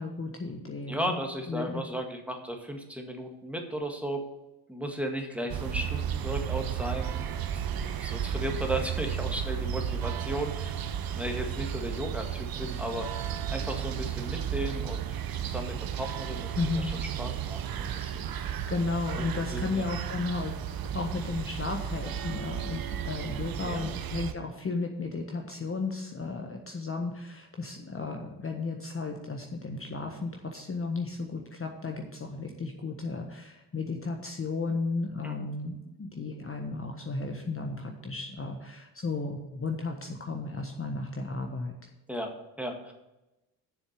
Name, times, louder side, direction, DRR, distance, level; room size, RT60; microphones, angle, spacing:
voice 1, 0.0-1.2 1.5-1.8 16.5-16.9 18.2-20.5 20.9-41.7, left 3 dB, 25° left, 2 dB, 1.4 m, -34 dB
voice 2, 0.9-4.3 4.7-7.2 7.5-10.8 11.1-16.8 17.2-18.3 19.2-19.9 23.6-24.0 35.2-35.5 42.1-42.9, equal, 5° right, 3 dB, 1.9 m, -35 dB
sound 1, 5.5-24.3, right 9 dB, 45° right, 0.9 m, -33 dB
7.1 x 7.0 x 6.7 m, 0.99 s
hypercardioid pair, 55°, 49 cm